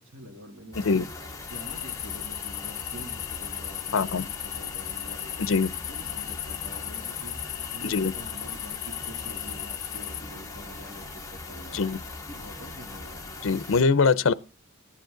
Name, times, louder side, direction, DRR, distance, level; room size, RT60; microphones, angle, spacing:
voice 1, 0.1-1.0 1.5-5.5 5.9-11.8 12.3-13.2, equal, 65° right, 2.9 m, -46 dB
sound 1, 0.7-13.8, left 3 dB, 15° left, 1.5 m, -40 dB
sound 2, 1.5-10.2, left 12 dB, 55° left, 0.9 m, -36 dB
voice 2, 3.9-4.2 5.4-5.7 7.8-8.1 11.7-12.0 13.4-14.3, left 4 dB, 80° left, 0.6 m, -22 dB
15.0 x 9.1 x 3.8 m
head